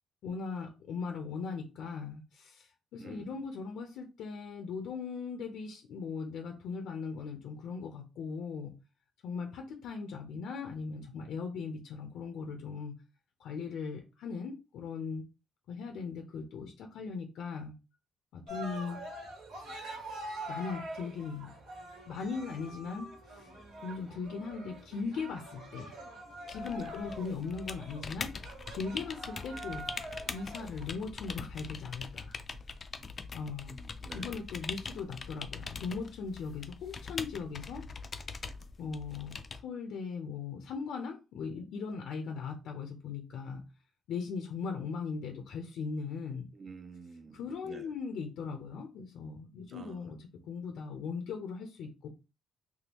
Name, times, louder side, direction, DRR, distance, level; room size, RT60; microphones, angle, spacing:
voice 1, 0.2-8.8 9.2-13.0 13.4-15.2 15.7-17.7 18.3-19.0 20.5-21.6 22.1-23.5 23.8-25.9 26.5-28.3 28.7-29.9 30.3-32.4 33.3-33.8 34.1-37.8 38.8-43.6 44.1-46.5 47.3-52.1, left 5 dB, 80° left, 0.6 m, -39 dB
voice 2, 3.0-3.4 26.8-26.9 33.7-34.4 46.5-47.9 49.7-50.1, right 4 dB, 35° right, 0.4 m, -49 dB
Cheering, 18.5-30.9, right 1 dB, 85° right, 1.5 m, -45 dB
sound 1, 26.5-39.6, left 4 dB, 35° left, 0.3 m, -43 dB
3.4 x 2.3 x 2.9 m
cardioid pair, 140°, 0 cm